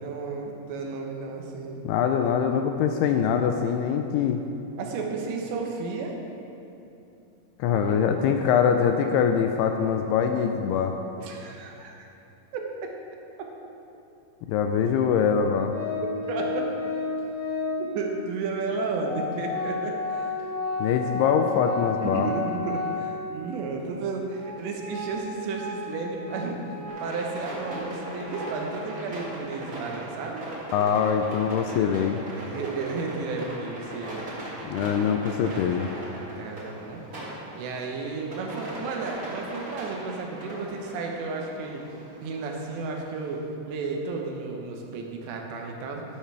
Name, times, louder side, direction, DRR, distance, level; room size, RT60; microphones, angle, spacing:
voice 1, 0.0-1.8 4.8-6.2 7.7-8.3 11.2-12.1 12.5-12.9 13.4-13.5 16.3-16.7 17.8-20.4 21.6-21.7 22.0-30.5 32.3-34.4 36.2-37.0 37.3-41.9 42.2-46.0, right 4 dB, 85° right, 1 dB, 3.3 m, -33 dB
voice 2, 1.8-4.4 7.6-10.9 14.5-15.7 20.8-22.3 30.7-32.2 34.7-35.9, left 7 dB, 85° left, 5 dB, 2.4 m, -23 dB
Organ, 15.7-18.0 18.7-18.8 19.0-23.4 23.8-23.9 24.4-28.8, left 3 dB, 55° left, 2.9 m, -32 dB
sound 1, 26.9-43.4, right 2 dB, 45° right, 1.1 m, -39 dB
13.0 x 10.5 x 3.4 m, 2.9 s
omnidirectional pair, 4.9 m